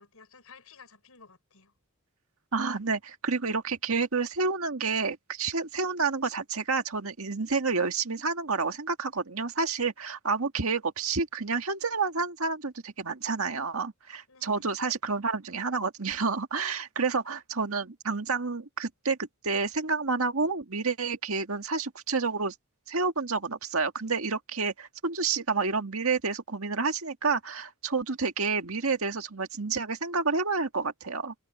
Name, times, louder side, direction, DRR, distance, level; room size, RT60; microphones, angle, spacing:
voice 1, 0.0-1.7 14.3-14.7 17.1-17.2, left 5 dB, 80° left, 5.9 m, -54 dB
voice 2, 2.5-19.2 19.4-22.5 22.9-31.3, right 4 dB, 70° right, 1.9 m, -29 dB
head